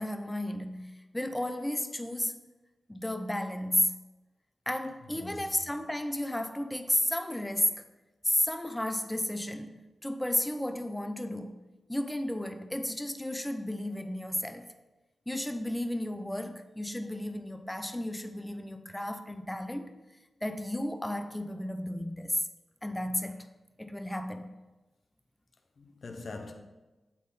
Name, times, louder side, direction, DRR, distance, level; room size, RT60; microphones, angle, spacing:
voice 1, 0.0-2.4 2.9-4.0 4.7-7.8 8.3-11.6 11.9-14.7 15.3-19.9 20.4-22.4 22.8-23.4 23.8-24.5, left 1 dB, 15° left, 0.6 m, -33 dB
voice 2, 5.1-5.7 25.8-26.5, left 3 dB, 60° left, 0.8 m, -43 dB
8.2 x 3.8 x 4.1 m
cardioid pair, 45°, 0 cm